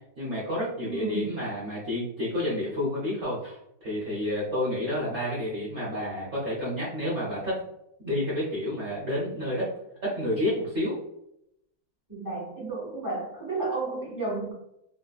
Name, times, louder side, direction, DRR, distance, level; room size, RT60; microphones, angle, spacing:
voice 1, 0.2-7.5 8.0-9.7 10.0-10.9, left 1 dB, 55° right, -6 dB, 0.7 m, -30 dB
voice 2, 0.8-1.6 12.1-14.5, right 3 dB, 15° right, -6 dB, 0.7 m, -32 dB
3.3 x 2.7 x 2.3 m, 0.80 s
omnidirectional pair, 2.3 m